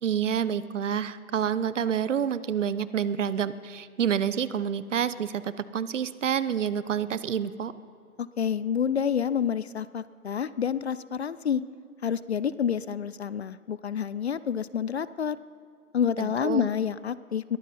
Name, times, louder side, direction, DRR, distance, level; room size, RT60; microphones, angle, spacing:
voice 1, 0.0-7.7 16.2-16.7, right 8 dB, 55° right, 16 dB, 0.7 m, -28 dB
voice 2, 8.2-11.6 12.0-15.4 15.9-17.6, left 8 dB, 50° left, 17 dB, 0.4 m, -28 dB
21.5 x 14.5 x 4.2 m, 2.4 s
figure-of-eight pair, 135°, 44 cm